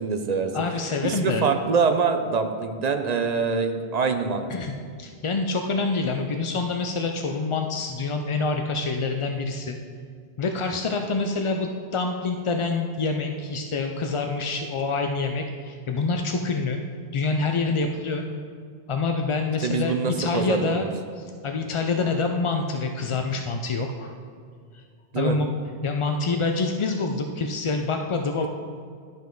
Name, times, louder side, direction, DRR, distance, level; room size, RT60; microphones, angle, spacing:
voice 1, 0.0-0.5 1.0-4.5 19.6-20.9 25.1-25.4, right 5 dB, 50° right, 7 dB, 0.6 m, -24 dB
voice 2, 0.5-1.5 4.5-9.8 10.4-16.8 17.1-18.2 18.9-20.9 21.2-24.1 25.2-25.6 25.8-28.5, left 3 dB, 50° left, 4 dB, 0.3 m, -26 dB
11.5 x 5.3 x 3.8 m, 2.2 s
omnidirectional pair, 1.0 m